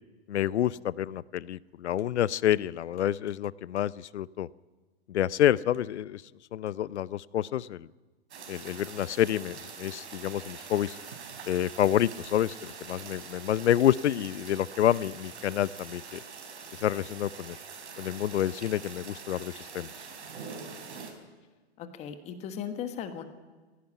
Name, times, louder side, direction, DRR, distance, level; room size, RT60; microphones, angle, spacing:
voice 1, 0.3-4.5 5.1-6.2 6.5-7.9 8.5-11.0 11.5-16.2 16.8-17.6 18.0-19.9, left 11 dB, 85° left, 21 dB, 0.7 m, -28 dB
sound 1, 8.3-21.1, right 5 dB, 80° right, 4.5 m, -44 dB
voice 2, 21.8-23.2, left 8 dB, 20° left, 9 dB, 1.4 m, -37 dB
16.5 x 16.5 x 10.0 m, 1.3 s
hypercardioid pair, 155°, 33 cm